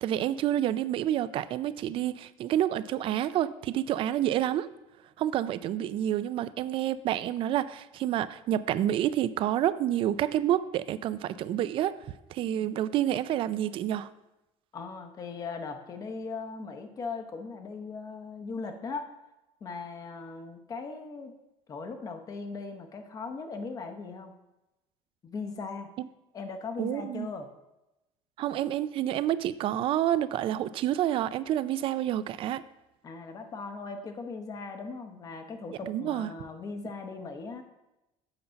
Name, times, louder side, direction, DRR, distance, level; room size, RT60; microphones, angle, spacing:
voice 1, 0.0-4.7 5.2-12.0 12.3-14.1 26.0-26.1 26.8-27.3 28.4-32.6 35.9-36.3, right 12 dB, 40° right, 15 dB, 0.3 m, -28 dB
voice 2, 14.7-19.1 19.6-21.3 21.7-24.3 25.2-25.9 26.3-27.5 33.0-37.6, left 4 dB, 25° left, 6 dB, 0.8 m, -39 dB
7.9 x 5.3 x 5.7 m, 0.96 s
cardioid pair, 165°, 13 cm